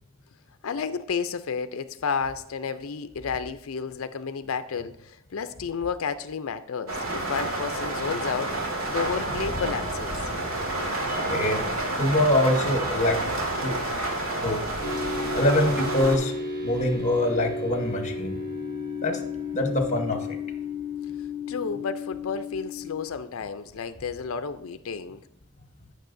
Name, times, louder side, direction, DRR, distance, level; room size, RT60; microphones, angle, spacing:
voice 1, 0.6-8.5 8.9-10.2 21.5-25.2, left 5 dB, 65° left, 0.5 m, -31 dB
sound 1, 6.9-16.2, right 1 dB, 70° right, 2.1 m, -29 dB
voice 2, 11.3-11.6 12.0-13.8 14.4-14.6 15.3-16.3 16.6-18.4 19.0-19.2 19.5-20.2, left 1 dB, 35° left, 1.2 m, -24 dB
sound 2, 14.8-23.1, left 4 dB, 45° right, 1.4 m, -33 dB
14.5 x 6.6 x 2.6 m
head